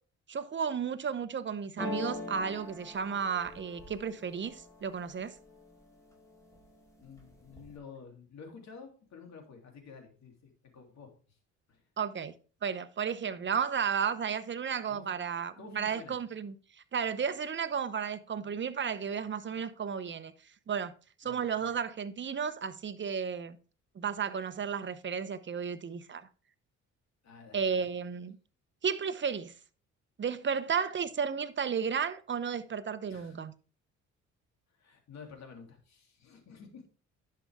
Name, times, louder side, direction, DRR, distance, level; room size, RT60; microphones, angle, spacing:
voice 1, 0.3-5.3 12.0-12.3 12.6-16.5 16.9-20.3 20.7-20.9 21.2-23.6 24.0-26.3 27.5-28.4 28.8-29.5 30.2-33.5, right 6 dB, 40° right, 0.9 m, -33 dB
sound 1, 1.8-5.6 6.1-6.7 7.0-7.8, left 2 dB, 10° left, 4.6 m, -42 dB
voice 2, 7.0-11.4 11.7-11.8 14.9-15.1 15.6-16.2 21.2-21.7 27.2-27.9 33.1-33.4 34.7-36.8, left 5 dB, 65° left, 3.2 m, -51 dB
11.0 x 6.8 x 3.6 m
cardioid pair, 90°, 30 cm